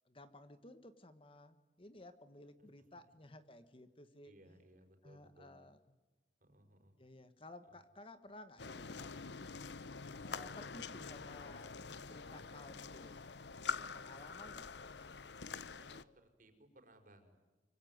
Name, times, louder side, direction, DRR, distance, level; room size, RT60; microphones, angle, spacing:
voice 1, 0.0-4.6 5.0-5.8 7.0-9.1 10.2-11.7 12.0-15.1, left 1 dB, 30° left, 11 dB, 1.4 m, -56 dB
voice 2, 4.2-5.7 6.4-6.9 15.7-17.4, right 1 dB, 45° right, 5 dB, 4.8 m, -63 dB
sound 1, 8.6-16.0, left 5 dB, 70° left, 0.9 m, -46 dB
25.5 x 24.5 x 9.5 m, 1.2 s
head